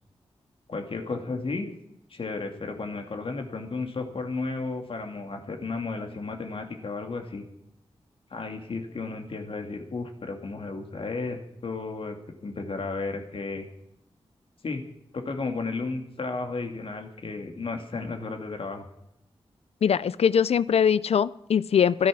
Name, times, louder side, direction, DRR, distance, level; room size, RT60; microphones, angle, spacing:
voice 1, 0.7-1.7 2.1-7.5 8.3-12.2 12.4-13.7 14.6-14.8 15.1-18.9, left 3 dB, 65° left, 5 dB, 2.3 m, -33 dB
voice 2, 19.8-22.1, left 7 dB, 90° left, 19 dB, 0.5 m, -22 dB
15.5 x 13.0 x 6.2 m, 0.83 s
wide cardioid pair, 135°, 10 cm